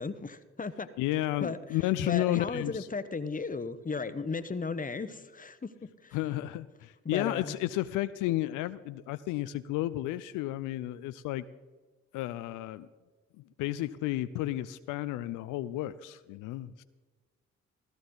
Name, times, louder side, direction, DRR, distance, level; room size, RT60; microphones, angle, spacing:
voice 1, 0.0-0.9 1.4-6.2 7.0-7.6, left 4 dB, 25° left, 13 dB, 1.0 m, -36 dB
voice 2, 1.0-2.9 6.1-11.4 12.1-12.9 13.4-16.8, left 15 dB, 80° left, 14 dB, 0.5 m, -32 dB
14.5 x 14.0 x 3.9 m, 1.3 s
hypercardioid pair, 40°, 31 cm